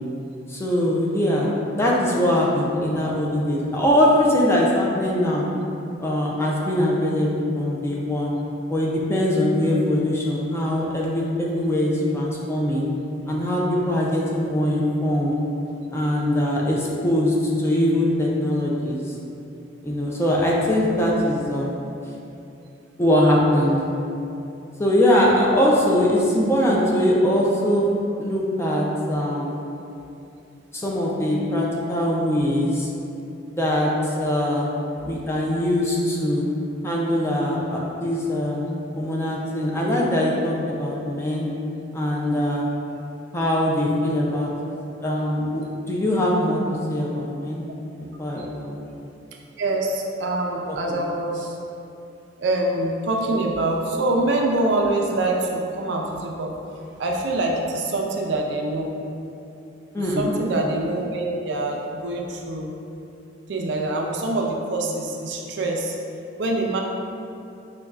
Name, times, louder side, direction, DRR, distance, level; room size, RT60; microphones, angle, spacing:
voice 1, 0.5-5.4 6.0-8.3 8.7-12.9 13.3-15.3 15.9-19.0 19.8-21.8 23.0-23.8 24.8-27.8 28.2-29.6 30.7-32.9 33.6-34.7 35.1-36.4 36.8-38.7 39.0-41.5 41.9-42.7 43.3-44.5 45.0-46.6 46.9-47.6 48.2-48.8 50.7-51.0 59.9-60.3, left 1 dB, 15° left, -4 dB, 0.4 m, -22 dB
voice 2, 49.6-51.6 52.4-56.5 57.0-58.9 59.9-62.7 63.5-66.0 66.4-66.8, right 2 dB, 65° right, 0 dB, 0.4 m, -25 dB
5.2 x 2.2 x 2.3 m, 2.8 s
head